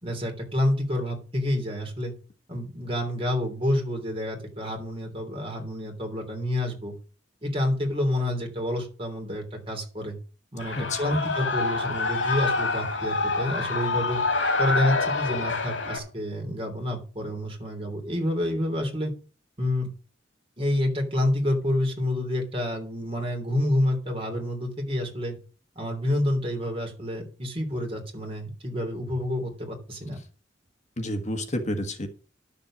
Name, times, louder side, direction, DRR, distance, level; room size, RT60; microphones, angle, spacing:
voice 1, 0.0-2.1 2.5-6.9 7.4-10.2 10.5-14.2 14.6-19.1 19.6-19.9 20.6-25.3 25.7-30.2, left 1 dB, 30° right, 3 dB, 3.2 m, -28 dB
Shout / Cheering, 10.6-16.0, left 3 dB, 80° left, 2.6 m, -26 dB
voice 2, 10.8-11.2 31.0-32.1, left 1 dB, 40° left, 6 dB, 1.5 m, -30 dB
11.5 x 7.0 x 6.2 m, 0.37 s
head